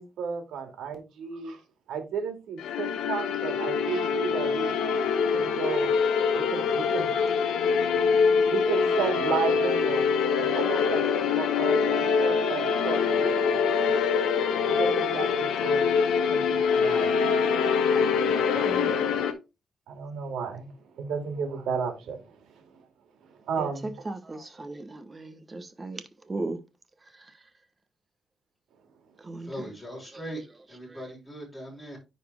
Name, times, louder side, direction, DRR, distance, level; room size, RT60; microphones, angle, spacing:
voice 1, 0.0-1.6 1.9-4.7 5.3-5.9 6.3-7.1 8.5-13.4 13.7-14.0 14.7-15.9 16.3-17.1 17.9-19.0 19.9-22.6 23.5-24.0, right 6 dB, 85° right, 2.3 m, -33 dB
sound 1, 2.6-19.3, left 6 dB, 85° left, 1.1 m, -24 dB
voice 2, 18.7-19.0 23.6-26.0 26.3-26.6 29.2-29.7, right 2 dB, 20° right, 1.1 m, -36 dB
voice 3, 29.4-30.4 30.7-32.0, equal, 10° left, 4.9 m, -39 dB
10.0 x 4.2 x 3.5 m
cardioid pair, 135°, 0 cm